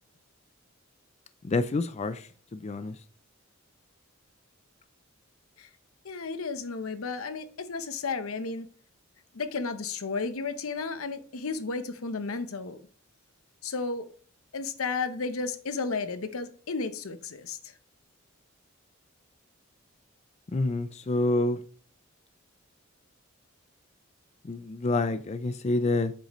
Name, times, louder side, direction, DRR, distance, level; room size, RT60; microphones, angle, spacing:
voice 1, 1.5-2.2 2.5-2.9 20.5-21.6 24.4-26.1, left 2 dB, 30° left, 0.4 m, -27 dB
voice 2, 6.0-8.7 9.3-12.8 13.6-14.1 14.5-17.7, left 4 dB, 85° left, 0.8 m, -33 dB
8.0 x 6.5 x 3.0 m
head